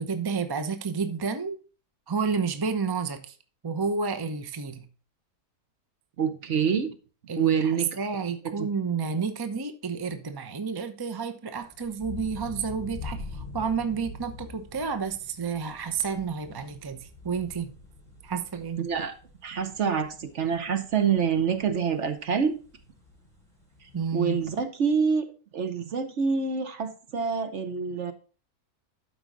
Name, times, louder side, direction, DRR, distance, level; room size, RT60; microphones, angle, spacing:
voice 1, 0.0-1.6 2.1-3.4 3.6-4.9 7.3-17.7 18.2-18.8 23.9-24.4, right 5 dB, 25° right, 0.6 m, -30 dB
voice 2, 6.2-7.0 7.3-7.9 8.4-8.7 18.8-19.1 19.4-22.6 24.1-25.3 25.5-28.1, right 6 dB, 55° right, 1.2 m, -26 dB
sound 1, 11.6-24.6, left 3 dB, ahead, 3.3 m, -45 dB
12.0 x 4.8 x 3.8 m
omnidirectional pair, 1.6 m